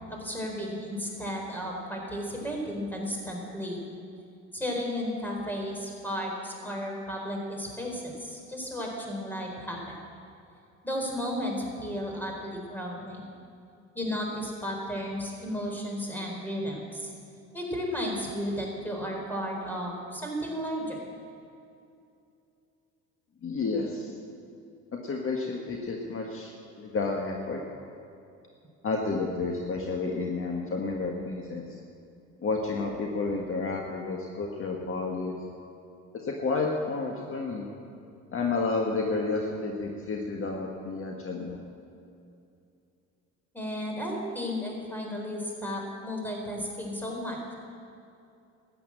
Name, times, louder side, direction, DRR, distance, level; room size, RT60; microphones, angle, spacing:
voice 1, 0.1-3.8 4.5-10.0 10.8-13.3 13.9-17.1 17.5-21.0 43.5-47.5, equal, 5° left, -1 dB, 4.2 m, -34 dB
voice 2, 23.4-24.1 24.9-27.6 28.8-31.8 32.4-35.3 36.1-37.7 38.3-41.6, left 3 dB, 40° left, 0 dB, 1.6 m, -31 dB
13.0 x 8.8 x 8.7 m, 2.6 s
supercardioid pair, 85°, 34 cm